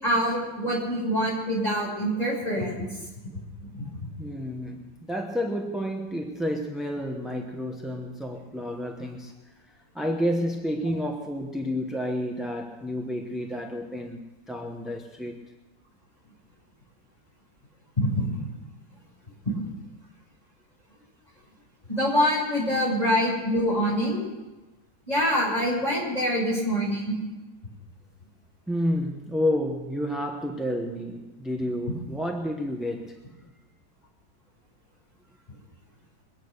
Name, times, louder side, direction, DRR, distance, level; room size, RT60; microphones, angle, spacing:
voice 1, 0.0-2.7 3.7-3.9 18.0-18.2 21.9-24.2 25.1-27.1, equal, 25° left, -4 dB, 6.0 m, -25 dB
voice 2, 4.2-9.4 9.9-14.2 14.5-15.4 28.7-33.2, equal, ahead, 2 dB, 0.8 m, -30 dB
23.0 x 9.3 x 6.7 m, 1.1 s
omnidirectional pair, 1.8 m